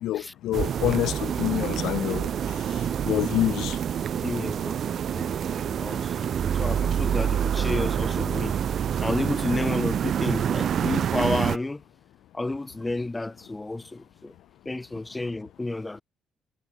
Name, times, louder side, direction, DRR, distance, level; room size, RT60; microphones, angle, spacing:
voice 1, 0.0-2.3 3.0-3.8, left 14 dB, 75° left, 0.8 m, -26 dB
sound 1, 0.5-11.6, right 9 dB, 45° right, 0.5 m, -27 dB
voice 2, 4.2-4.8 5.1-8.6 9.0-11.8 12.3-14.3 14.7-16.0, left 2 dB, 10° left, 0.7 m, -31 dB
cardioid pair, 145°, 0 cm